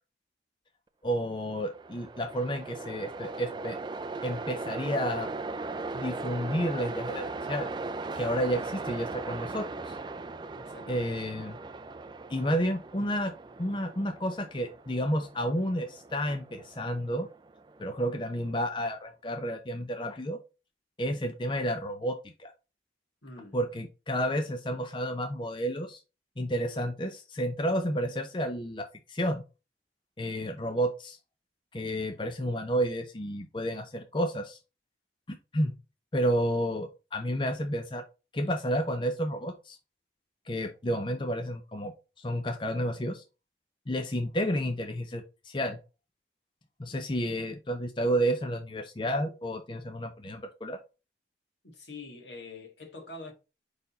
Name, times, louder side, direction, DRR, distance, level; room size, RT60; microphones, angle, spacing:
voice 1, 1.0-3.8 4.2-5.3 5.9-7.7 8.2-9.9 10.9-11.6 12.3-13.3 13.6-17.3 17.8-20.4 21.0-22.5 23.5-26.0 26.4-29.4 30.2-31.2 31.7-34.6 35.3-35.7 36.1-38.0 38.3-39.8 40.5-43.2 43.9-45.8 46.8-50.8, equal, 25° left, 0.6 m, -31 dB
Train, 1.4-18.6, right 3 dB, 25° right, 0.4 m, -39 dB
voice 2, 10.5-11.1 23.2-23.6 51.7-53.3, left 3 dB, 75° left, 1.9 m, -45 dB
5.2 x 4.5 x 4.1 m
head